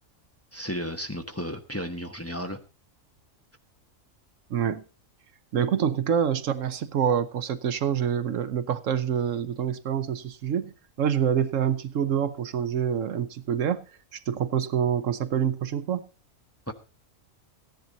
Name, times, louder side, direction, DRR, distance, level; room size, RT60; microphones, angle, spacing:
voice 1, 0.5-2.6 16.7-16.8, equal, 10° left, 1.1 m, -33 dB
voice 2, 4.5-4.8 5.5-10.7 11.0-13.8 14.1-16.0, right 8 dB, 75° right, 1.1 m, -26 dB
14.5 x 10.5 x 4.0 m
omnidirectional pair, 1.4 m